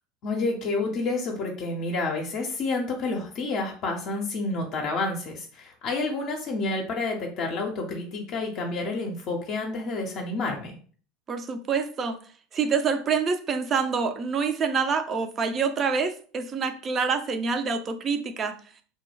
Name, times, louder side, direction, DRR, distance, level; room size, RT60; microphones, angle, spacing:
voice 1, 0.2-10.8, left 3 dB, 50° left, 1 dB, 0.5 m, -29 dB
voice 2, 11.3-12.2 12.5-18.5, right 5 dB, 35° right, 8 dB, 0.4 m, -26 dB
2.2 x 2.2 x 3.2 m, 0.43 s
hypercardioid pair, 80°, 0 cm